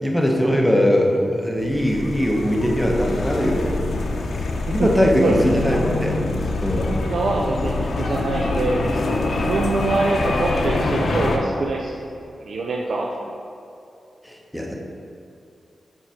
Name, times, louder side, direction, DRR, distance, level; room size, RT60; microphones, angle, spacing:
voice 1, 0.0-3.8 4.7-6.2 6.6-7.0 14.2-14.7, equal, ahead, -1 dB, 0.9 m, -20 dB
sound 1, 1.6-11.4, left 2 dB, 60° left, 0.8 m, -25 dB
voice 2, 7.0-9.0 9.4-11.9 12.4-13.4, right 3 dB, 65° right, -1 dB, 0.6 m, -24 dB
7.8 x 4.5 x 5.7 m, 2.7 s
wide cardioid pair, 150°, 0 cm